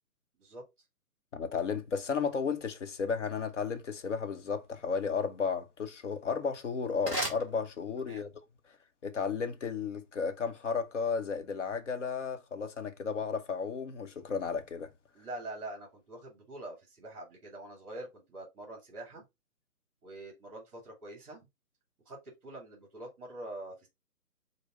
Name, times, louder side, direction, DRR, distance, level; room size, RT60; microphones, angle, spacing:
voice 1, 1.3-8.3 9.0-14.9, left 5 dB, 50° left, 0.8 m, -33 dB
sound 1, 6.2-8.3, right 1 dB, 5° left, 0.9 m, -39 dB
voice 2, 15.1-19.2 20.0-21.5 22.1-22.2 22.4-23.9, right 1 dB, 20° right, 2.2 m, -45 dB
5.2 x 2.1 x 4.7 m
hypercardioid pair, 155°, 47 cm